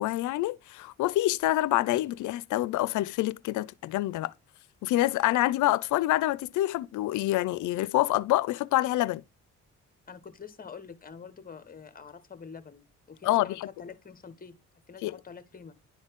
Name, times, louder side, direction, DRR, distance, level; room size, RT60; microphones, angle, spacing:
voice 1, 0.0-4.3 4.8-9.2 13.2-13.7 15.0-15.1, left 16 dB, 80° left, 0.5 m, -26 dB
voice 2, 10.1-14.5 14.9-15.8, left 6 dB, 30° left, 1.2 m, -46 dB
11.0 x 4.0 x 3.6 m
cardioid pair, 90°, 30 cm